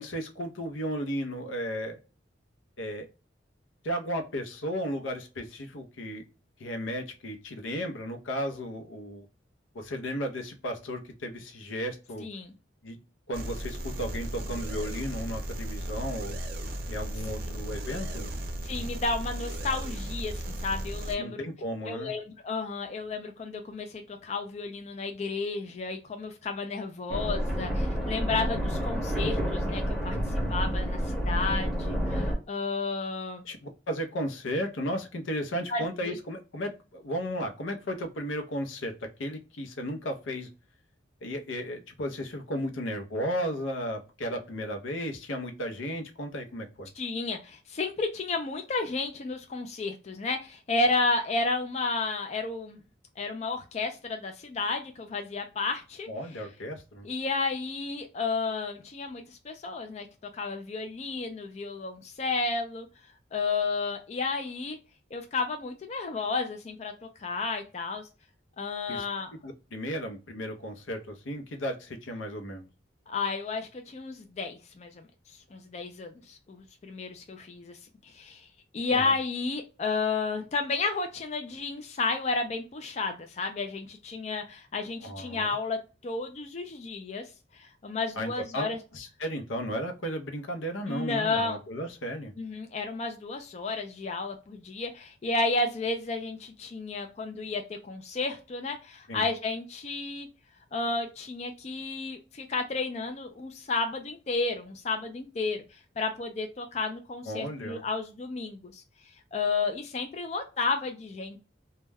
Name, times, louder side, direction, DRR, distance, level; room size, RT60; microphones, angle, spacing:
voice 1, 0.0-2.0 2.8-3.1 3.8-6.2 6.6-9.3 9.7-12.3 12.8-13.0 13.3-16.4 16.9-18.3 21.2-22.1 27.1-27.3 33.4-40.5 41.2-46.9 56.1-57.1 68.9-69.0 69.4-72.7 78.9-79.1 85.0-85.5 88.2-88.7 88.9-92.3 99.1-99.3 107.2-107.8, equal, 85° left, 5 dB, 0.6 m, -34 dB
voice 2, 12.2-12.5 17.9-18.0 18.6-21.4 21.8-33.4 35.7-36.2 47.0-52.8 53.2-56.1 57.0-60.1 60.3-62.9 63.3-64.8 65.1-66.9 67.2-68.1 68.6-69.3 73.1-75.0 75.5-77.8 78.0-78.5 78.7-87.2 87.5-88.8 90.9-91.6 92.4-100.3 100.7-108.8 109.3-111.4, left 3 dB, 35° left, 5 dB, 0.3 m, -32 dB
sound 1, 13.3-21.2, right 1 dB, 50° right, 0.5 m, -35 dB
sound 2, 27.1-32.4, equal, ahead, 0.7 m, -29 dB
2.2 x 2.1 x 3.2 m, 0.32 s
head